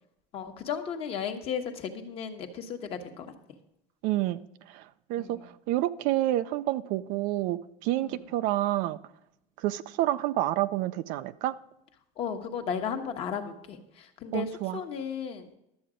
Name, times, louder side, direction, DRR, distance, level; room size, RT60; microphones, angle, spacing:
voice 1, 0.3-3.3 5.2-5.5 8.0-8.3 12.2-15.6, left 7 dB, 35° left, 5 dB, 1.2 m, -35 dB
voice 2, 4.0-4.4 4.7-9.0 9.6-11.5 14.3-14.8, right 15 dB, 55° right, 13 dB, 0.5 m, -29 dB
12.5 x 7.8 x 5.0 m, 0.83 s
cardioid pair, 165°, 16 cm